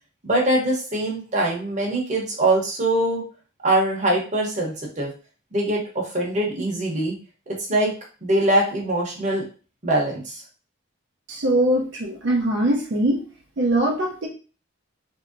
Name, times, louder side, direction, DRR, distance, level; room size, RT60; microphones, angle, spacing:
voice 1, 0.2-3.2 3.6-5.1 5.5-7.2 7.5-7.9 8.2-9.4 9.8-10.4, right 1 dB, 40° right, -2 dB, 0.9 m, -23 dB
voice 2, 11.3-13.2 13.6-14.3, right 1 dB, 65° right, -1 dB, 0.6 m, -22 dB
3.1 x 2.7 x 2.5 m, 0.36 s
head